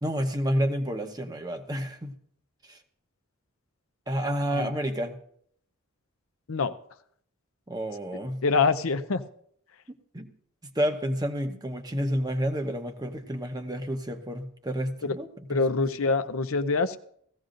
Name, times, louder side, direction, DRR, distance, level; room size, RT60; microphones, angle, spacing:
voice 1, 0.0-2.1 2.7-2.8 4.1-5.2 7.7-8.4 10.1-10.3 10.7-15.8, equal, 20° right, 5 dB, 1.0 m, -30 dB
voice 2, 8.4-9.2 15.0-15.1 15.5-17.0, left 4 dB, 80° left, 11 dB, 0.7 m, -25 dB
17.5 x 15.0 x 2.6 m, 0.66 s
head